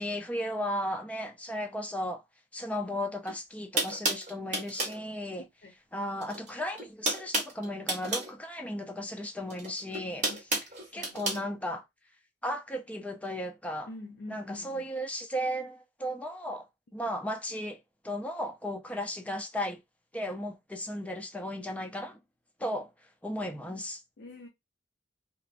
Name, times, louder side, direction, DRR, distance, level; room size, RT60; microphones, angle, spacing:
voice 1, 0.0-2.2 2.5-5.4 5.9-10.3 10.9-11.8 12.4-13.9 14.3-16.6 16.9-17.8 18.0-19.8 20.1-22.2 22.6-22.9 23.2-24.0, equal, 10° left, 0.4 m, -35 dB
sound 1, 3.2-3.3 3.8-5.0 6.2-6.5 6.7-8.3 9.5-11.4, right 2 dB, 45° right, 1.1 m, -31 dB
voice 2, 10.0-10.4 10.8-11.5 13.9-14.9 24.2-24.5, left 2 dB, 70° left, 0.6 m, -45 dB
2.9 x 2.1 x 2.4 m
head